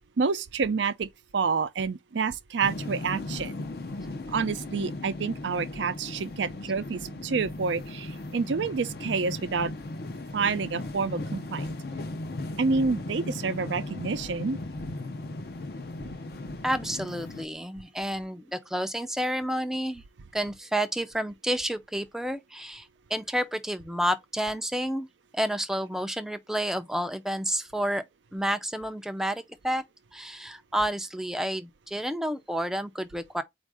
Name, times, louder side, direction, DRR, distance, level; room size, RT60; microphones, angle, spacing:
voice 1, 0.2-3.5 4.3-9.7 10.3-11.7 12.6-14.6, right 4 dB, 90° right, 0.5 m, -28 dB
sound 1, 2.6-17.4, left 2 dB, 55° left, 0.6 m, -37 dB
voice 2, 16.6-20.0 20.3-25.1 25.3-28.0 28.3-29.8 30.1-33.4, equal, ahead, 0.4 m, -30 dB
4.5 x 2.5 x 4.7 m
head